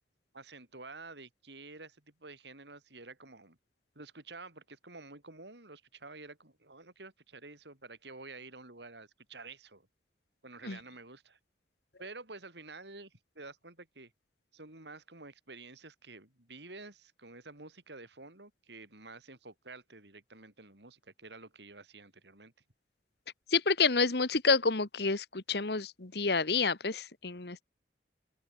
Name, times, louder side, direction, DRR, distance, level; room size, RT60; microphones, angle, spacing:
voice 1, 0.3-3.6 3.9-9.9 10.4-11.4 12.0-14.1 14.5-22.5, right 3 dB, 75° right, 4.6 m, -50 dB
voice 2, 23.5-27.6, left 4 dB, 65° left, 1.4 m, -29 dB
open air
head